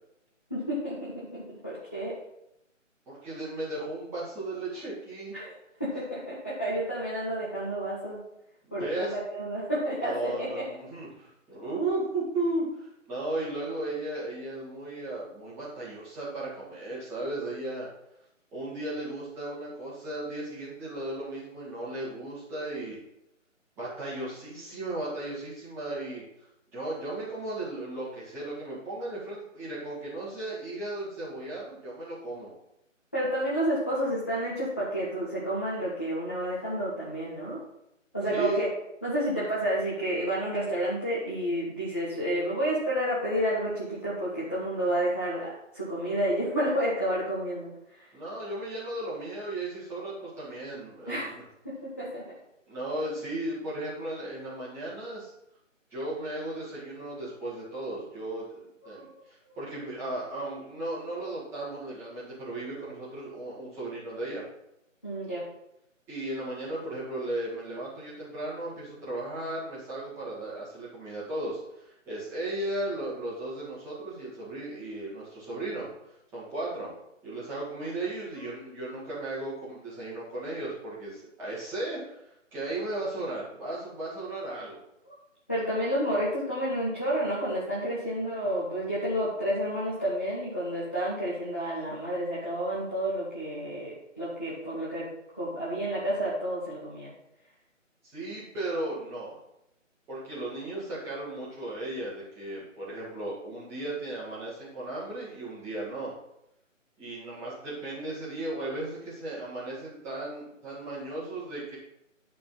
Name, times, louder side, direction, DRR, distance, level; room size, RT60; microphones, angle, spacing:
voice 1, 0.5-2.2 5.3-8.2 8.7-10.7 33.1-37.6 38.1-38.7 39.0-48.0 51.1-51.3 51.6-52.2 58.9-59.1 65.0-65.4 85.5-95.1 95.3-97.1, equal, 10° left, -10 dB, 0.7 m, -30 dB
voice 2, 3.1-5.3 8.7-9.1 9.9-17.9 18.5-23.0 23.8-26.2 26.7-32.5 38.3-38.6 48.1-51.4 52.7-55.3 55.9-58.5 58.8-64.4 66.1-75.9 76.3-76.9 77.2-84.8 98.0-99.4 100.1-106.1 107.0-111.8, right 2 dB, 5° right, -10 dB, 2.0 m, -35 dB
11.0 x 4.3 x 5.4 m, 0.84 s
figure-of-eight pair, 155°, 39 cm